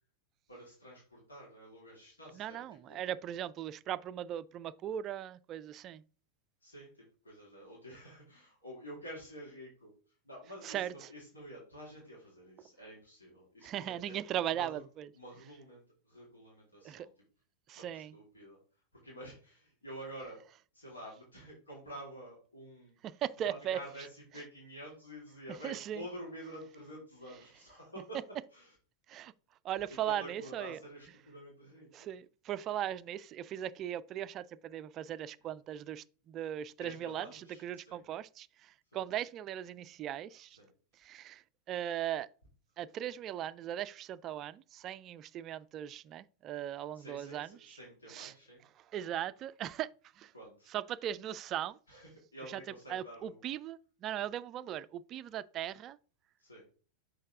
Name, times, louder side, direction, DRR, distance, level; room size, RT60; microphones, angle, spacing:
voice 1, 0.5-3.0 6.6-14.2 14.5-14.8 15.1-17.1 17.8-20.4 20.7-23.0 23.4-28.2 28.5-28.7 30.0-32.1 36.8-38.0 38.9-39.0 40.5-40.7 46.9-48.6 50.3-50.7 51.9-53.5 56.4-56.7, equal, 75° left, 2.4 m, -49 dB
voice 2, 2.3-6.0 10.6-10.9 13.6-15.1 16.8-17.1 17.7-18.1 23.0-23.8 25.6-26.0 29.1-29.3 29.6-30.8 31.9-40.6 40.9-42.3 42.8-47.8 48.1-48.3 48.9-50.3 50.7-51.8 52.5-52.6 52.9-56.0, right 11 dB, 35° right, 0.3 m, -38 dB
6.5 x 4.8 x 3.5 m
figure-of-eight pair, 90°, 0 cm